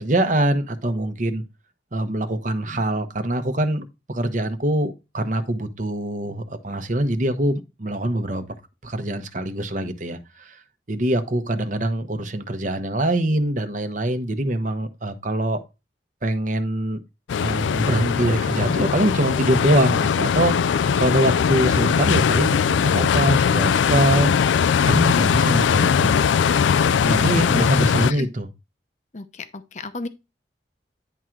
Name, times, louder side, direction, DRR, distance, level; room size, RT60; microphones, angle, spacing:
voice 1, 0.0-1.4 1.9-8.4 8.8-10.6 10.9-15.6 16.2-17.0 17.4-24.3 24.9-26.2 27.0-28.5, right 1 dB, 40° right, 1.0 m, -24 dB
sound 1, 17.3-28.1, left 7 dB, 80° left, 0.3 m, -20 dB
voice 2, 26.8-27.6 28.1-28.3 29.1-30.1, left 2 dB, 40° left, 0.7 m, -33 dB
10.0 x 3.8 x 4.6 m
head